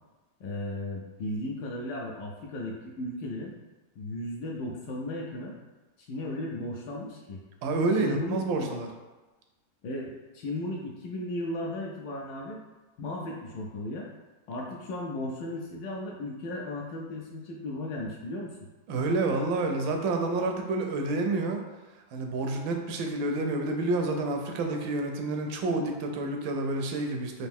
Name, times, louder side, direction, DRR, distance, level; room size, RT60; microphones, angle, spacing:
voice 1, 0.4-3.5 4.0-5.5 6.0-7.4 7.9-8.7 9.8-12.6 13.0-14.1 14.5-18.6, left 1 dB, 75° left, -1 dB, 1.1 m, -35 dB
voice 2, 7.6-8.9 18.9-21.6 22.1-27.5, right 2 dB, 80° right, 3 dB, 1.3 m, -29 dB
4.2 x 2.6 x 3.4 m, 1.2 s
omnidirectional pair, 2.2 m